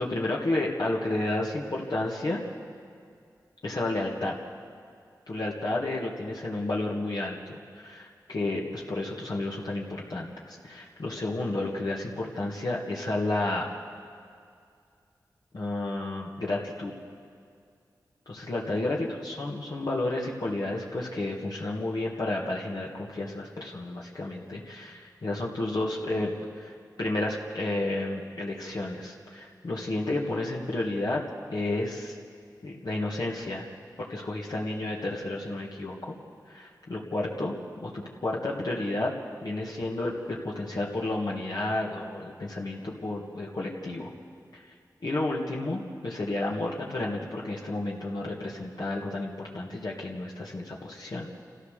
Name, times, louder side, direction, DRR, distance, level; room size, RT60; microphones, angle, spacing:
voice 1, 0.0-2.4 3.6-4.3 5.3-13.7 15.5-16.9 18.3-31.2 31.5-32.1 32.6-33.7 34.0-36.1 36.5-37.5 37.8-39.1 39.4-44.1 44.5-44.6 45.0-51.3, left 2 dB, 65° left, -3 dB, 2.1 m, -31 dB
28.0 x 14.0 x 6.7 m, 2.3 s
cardioid pair, 50°, 7 cm